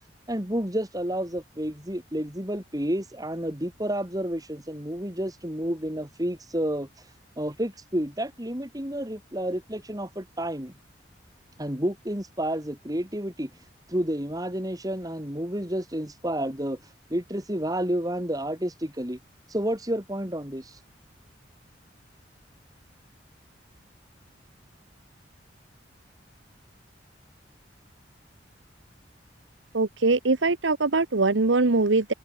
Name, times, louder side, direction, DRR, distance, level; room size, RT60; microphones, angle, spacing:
voice 1, 0.3-10.7 11.6-19.2 19.5-20.8, right 1 dB, 20° right, 4.4 m, -30 dB
voice 2, 29.7-32.1, right 3 dB, 85° right, 1.1 m, -22 dB
head